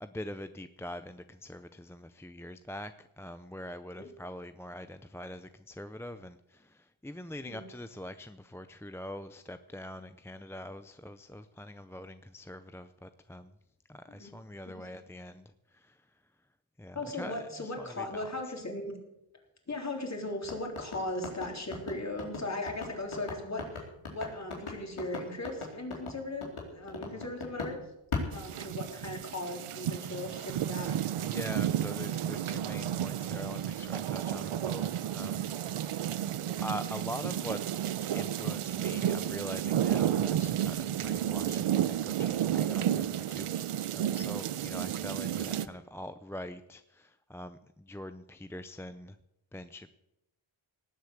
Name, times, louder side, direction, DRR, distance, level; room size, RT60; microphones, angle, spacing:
voice 1, 0.0-13.5 13.9-16.0 16.8-18.3 27.1-27.2 28.5-28.6 31.2-35.5 35.8-36.2 36.6-37.6 38.1-49.2 49.5-49.9, left 1 dB, 5° left, 10 dB, 0.5 m, -43 dB
voice 2, 16.9-19.0 19.7-27.8 28.3-31.0 45.5-45.6, left 2 dB, 35° left, 1 dB, 3.7 m, -38 dB
sound 1, 20.4-27.8 28.1-29.2, left 4 dB, 80° left, 4.2 m, -38 dB
sound 2, 28.3-45.7, right 10 dB, 85° right, 0.8 m, -32 dB
18.5 x 8.1 x 8.1 m, 0.87 s
wide cardioid pair, 130°, 49 cm